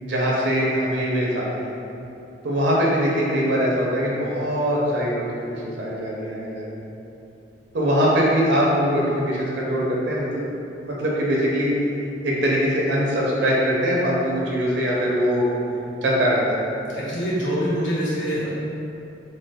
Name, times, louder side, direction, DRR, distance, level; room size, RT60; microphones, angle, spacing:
voice 1, 0.0-1.7 2.4-6.8 7.7-10.4 10.8-11.7 12.2-15.5 16.0-16.6, equal, 75° right, -4 dB, 0.6 m, -22 dB
voice 2, 16.9-18.5, equal, 90° left, -8 dB, 0.9 m, -25 dB
3.0 x 2.1 x 3.5 m, 2.8 s
head